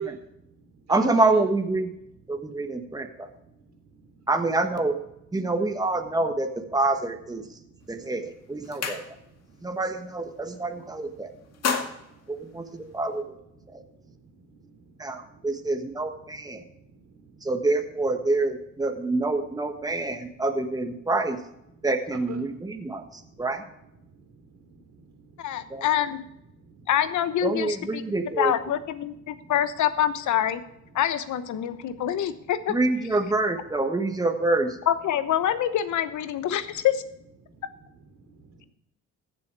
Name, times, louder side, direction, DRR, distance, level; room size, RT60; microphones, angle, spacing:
voice 1, 0.0-1.4 2.0-4.3 5.4-5.5 7.5-9.8 10.4-17.5 18.8-18.9 19.5-20.4 21.7-25.9 26.2-26.9 28.0-28.3 29.1-29.5 30.9-31.0 31.6-32.5 36.5-36.6 37.4-38.7, right 6 dB, 65° right, 4 dB, 3.4 m, -48 dB
voice 2, 0.9-1.9 2.3-3.3 4.3-5.0 5.3-7.5 7.9-9.0 9.6-11.3 12.3-13.4 13.7-13.8 15.0-16.6 17.4-21.4 21.8-23.6 25.7-25.8 27.4-28.5 32.7-34.8, right 2 dB, 10° right, 6 dB, 1.4 m, -26 dB
sound 1, 7.8-8.0 8.4-9.5 9.9-10.1 10.4-11.0 11.3-13.2, left 5 dB, 55° left, 2.0 m, -33 dB
voice 3, 25.4-26.2 26.9-28.0 28.4-30.6 30.9-32.7 34.9-37.0, left 10 dB, 75° left, 12 dB, 1.0 m, -26 dB
15.0 x 7.1 x 4.8 m, 0.80 s
cardioid pair, 90°, 30 cm